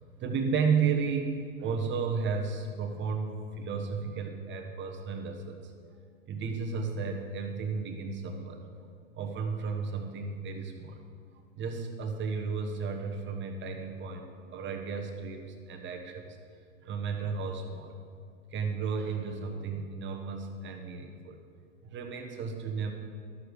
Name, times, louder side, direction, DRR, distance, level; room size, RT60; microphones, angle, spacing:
voice 1, 0.2-5.7 6.3-8.6 9.1-11.0 11.6-16.4 16.8-17.9 18.5-21.4 21.8-22.9, right 5 dB, 30° right, 4 dB, 1.1 m, -33 dB
13.0 x 7.9 x 4.9 m, 2.2 s
hypercardioid pair, 110°, 40 cm